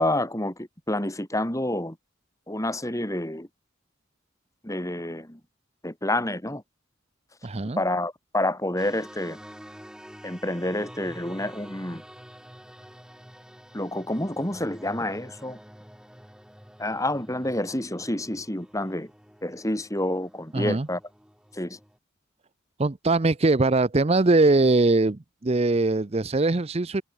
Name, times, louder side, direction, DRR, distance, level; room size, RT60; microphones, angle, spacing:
voice 1, 0.0-2.0 2.5-3.5 4.6-5.4 5.8-6.6 7.6-9.4 10.2-12.0 13.7-15.6 16.8-19.1 19.4-21.0 21.5-21.8, left 1 dB, 15° left, 3.9 m, -28 dB
voice 2, 7.4-7.8 20.5-20.9 22.8-27.0, right 2 dB, 30° right, 0.6 m, -21 dB
sound 1, 8.8-22.0, equal, 5° right, 7.3 m, -48 dB
head